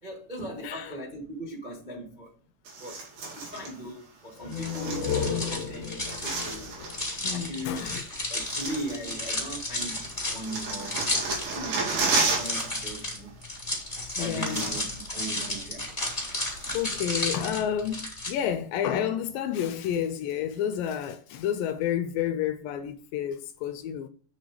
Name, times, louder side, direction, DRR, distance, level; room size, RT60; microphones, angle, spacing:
voice 1, 0.0-2.3 2.8-3.0 3.3-6.7 7.2-7.8 8.3-10.0 10.3-11.0 11.5-11.8 12.2-13.3 14.2-15.9 16.6-16.8, right 1 dB, 30° right, 0.8 m, -39 dB
voice 2, 0.6-1.0 6.8-8.0 14.2-14.8 16.7-24.1, left 9 dB, 80° left, 2.2 m, -30 dB
sound 1, 2.7-3.7 4.5-5.6 5.8-7.1 7.9-8.0 8.3-9.5 9.8-12.8 13.1-13.3 14.0-14.1 14.3-15.1 15.4-15.5 16.0-17.0 17.5-17.6, right 3 dB, 70° right, 4.5 m, -32 dB
sound 2, 4.3-7.9, left 7 dB, 60° left, 2.2 m, -34 dB
sound 3, 4.5-18.3, left 1 dB, 10° left, 3.5 m, -33 dB
7.4 x 6.3 x 4.9 m
omnidirectional pair, 4.3 m